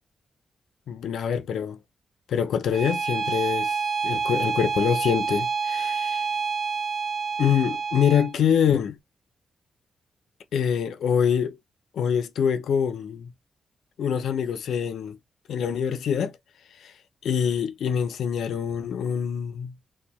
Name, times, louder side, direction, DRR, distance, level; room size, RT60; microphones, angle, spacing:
voice 1, 0.9-1.8 2.3-6.2 7.4-9.0 10.5-11.6 11.9-13.3 14.0-15.2 15.5-16.3 16.8-16.9 17.2-19.7, left 8 dB, 85° left, 0.3 m, -25 dB
Bowed string instrument, 2.7-8.3, right 5 dB, 85° right, 0.4 m, -28 dB
2.6 x 2.1 x 2.9 m
wide cardioid pair, 170°, 0 cm